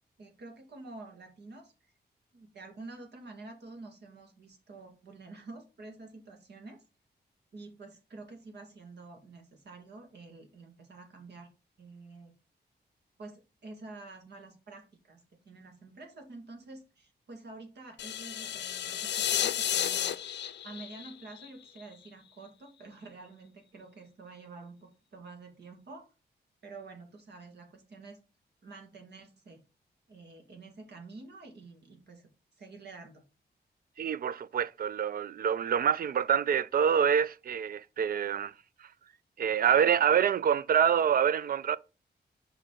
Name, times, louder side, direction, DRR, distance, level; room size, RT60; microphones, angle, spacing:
voice 1, 0.2-1.9 2.3-6.8 7.5-11.5 11.8-12.3 13.2-15.2 15.4-20.2 20.6-26.1 26.6-28.2 28.6-29.6 30.1-32.2 32.6-33.2, right 3 dB, 75° right, 2.0 m, -48 dB
sound 1, 18.0-22.1, left 10 dB, 85° left, 0.5 m, -32 dB
voice 2, 34.0-38.5 39.4-41.8, right 8 dB, 60° right, 0.4 m, -26 dB
5.5 x 5.0 x 3.8 m
wide cardioid pair, 125°, 17 cm